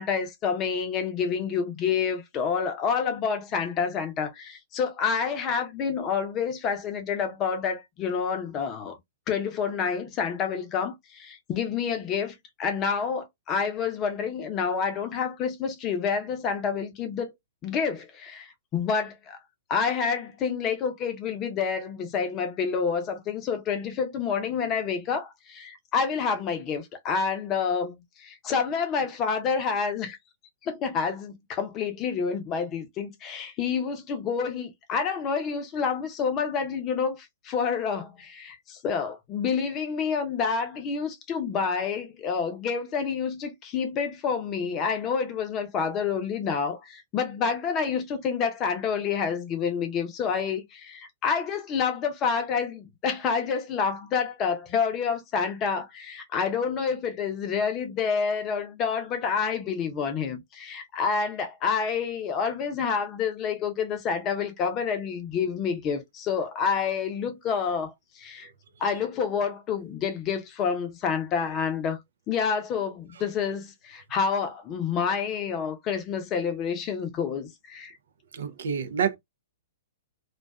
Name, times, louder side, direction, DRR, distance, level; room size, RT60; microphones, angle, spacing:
voice 1, 0.0-9.0 9.3-17.3 17.6-19.4 19.7-30.2 30.6-68.5 68.8-72.0 72.3-77.9, left 6 dB, 30° left, 0.7 m, -28 dB
voice 2, 78.3-79.2, right 7 dB, 70° right, 0.5 m, -28 dB
2.5 x 2.3 x 2.2 m
hypercardioid pair, 120°, 0 cm